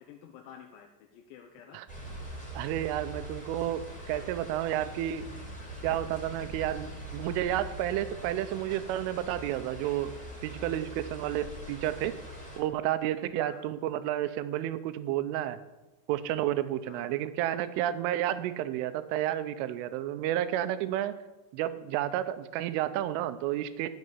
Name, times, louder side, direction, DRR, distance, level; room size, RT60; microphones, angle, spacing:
voice 1, 0.0-1.8 13.4-13.7 16.9-17.1, left 8 dB, 75° left, 3 dB, 3.0 m, -51 dB
sound 1, 1.9-12.6, equal, ahead, 3.5 m, -43 dB
voice 2, 2.6-5.2 5.8-10.2 10.4-12.1 12.6-15.6 16.1-21.2 21.5-23.9, right 12 dB, 85° right, 12 dB, 3.2 m, -31 dB
14.0 x 6.7 x 9.7 m, 1.1 s
omnidirectional pair, 5.7 m